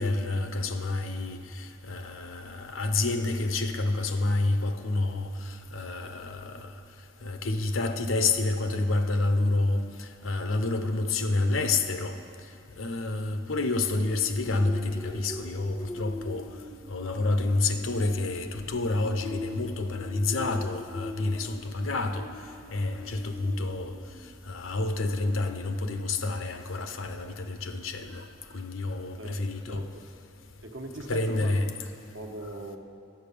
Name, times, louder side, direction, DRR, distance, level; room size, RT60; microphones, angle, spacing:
voice 1, 0.0-6.7 7.2-12.2 12.8-16.4 16.9-22.3 22.7-23.9 24.5-28.3 28.5-29.8 31.1-31.7, left 2 dB, 90° left, 7 dB, 0.8 m, -29 dB
sound 1, 13.8-25.1, left 2 dB, 25° left, 0.5 m, -43 dB
voice 2, 29.2-30.0 30.6-31.7 32.1-32.8, right 1 dB, 75° right, 3 dB, 1.1 m, -40 dB
10.5 x 8.2 x 6.8 m, 2.4 s
head